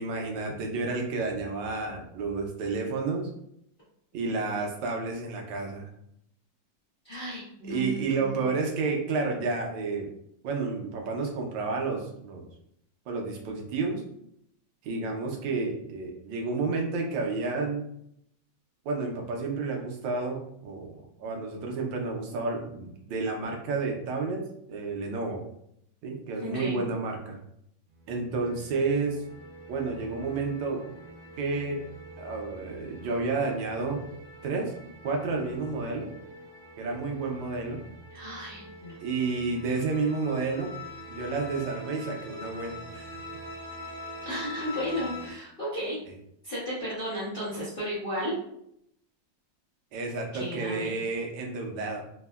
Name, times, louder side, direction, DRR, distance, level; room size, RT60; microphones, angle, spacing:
voice 1, 0.0-3.3 4.1-5.9 7.6-10.1 10.4-12.5 13.1-14.0 14.8-17.8 18.8-25.4 26.0-27.4 28.1-29.2 29.7-30.8 31.4-31.8 32.2-34.0 34.4-34.7 35.0-36.1 36.8-37.8 39.0-40.7 41.1-43.1 49.9-52.0, right 3 dB, 90° right, 1 dB, 1.3 m, -30 dB
voice 2, 7.0-8.4 26.4-26.8 38.1-39.0 44.2-46.0 46.4-48.4 50.3-50.9, equal, 50° left, -9 dB, 0.6 m, -34 dB
sound 1, 27.9-45.3, left 2 dB, 70° right, 1.4 m, -44 dB
3.5 x 2.1 x 2.2 m, 0.74 s
omnidirectional pair, 2.0 m